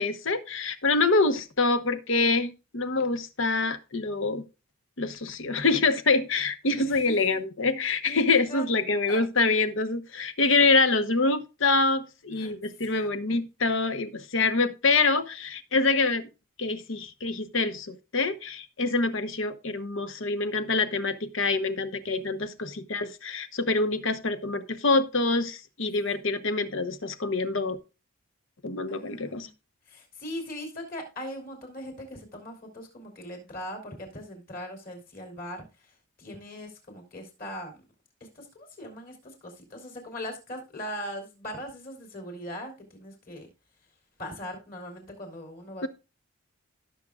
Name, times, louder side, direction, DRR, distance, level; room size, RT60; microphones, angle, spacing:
voice 1, 0.0-4.4 5.0-16.3 16.6-27.8 28.6-29.5 45.8-45.9, left 3 dB, 65° left, 1.0 m, -26 dB
voice 2, 6.9-7.4 7.7-8.7 9.1-9.2 12.3-12.5 12.8-13.2 22.0-22.6 26.2-26.3 28.9-29.5 29.9-37.8 38.3-43.5 44.2-45.9, equal, 40° left, 3.4 m, -40 dB
17.0 x 6.4 x 2.4 m
head